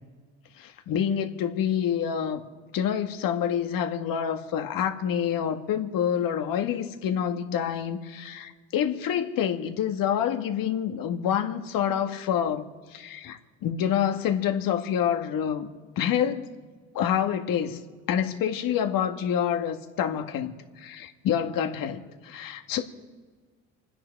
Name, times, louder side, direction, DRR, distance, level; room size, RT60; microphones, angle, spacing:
voice 1, 0.6-2.4 2.7-12.6 12.9-15.7 16.0-16.5 16.9-17.8 18.1-22.8, left 9 dB, 60° left, 1.9 m, -27 dB
28.5 x 10.0 x 4.8 m
hypercardioid pair, 65°, 38 cm